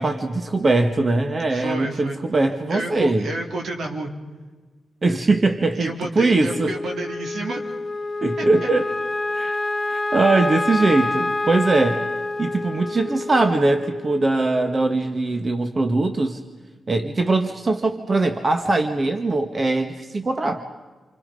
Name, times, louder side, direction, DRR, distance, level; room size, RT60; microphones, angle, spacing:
voice 1, 0.0-3.3 5.0-6.7 8.2-8.9 9.3-9.6 9.9-12.1 12.4-16.4 16.9-20.6, right 2 dB, 35° right, 6 dB, 1.6 m, -21 dB
voice 2, 1.5-2.2 2.7-4.1 5.8-7.6 8.4-8.5, right 2 dB, 75° right, 1 dB, 3.9 m, -30 dB
Wind instrument woodwind instrument, 6.4-14.9, left 2 dB, 20° left, 1.0 m, -27 dB
30.0 x 25.0 x 5.4 m, 1.3 s
cardioid pair, 85°, 0 cm